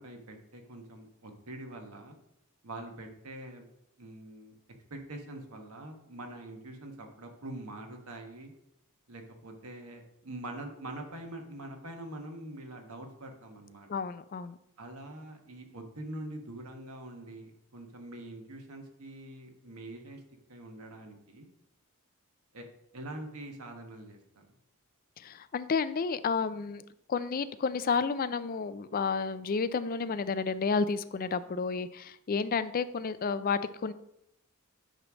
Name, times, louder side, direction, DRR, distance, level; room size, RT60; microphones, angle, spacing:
voice 1, 0.0-2.2 2.6-3.7 4.0-4.5 4.9-8.5 9.1-13.9 14.8-20.2 20.5-21.5 22.5-22.6 22.9-24.4, right 1 dB, 85° right, 3 dB, 1.4 m, -44 dB
voice 2, 13.9-14.6 25.2-26.8 27.1-33.9, left 5 dB, 40° left, 14 dB, 0.4 m, -31 dB
9.0 x 3.2 x 6.1 m, 0.79 s
head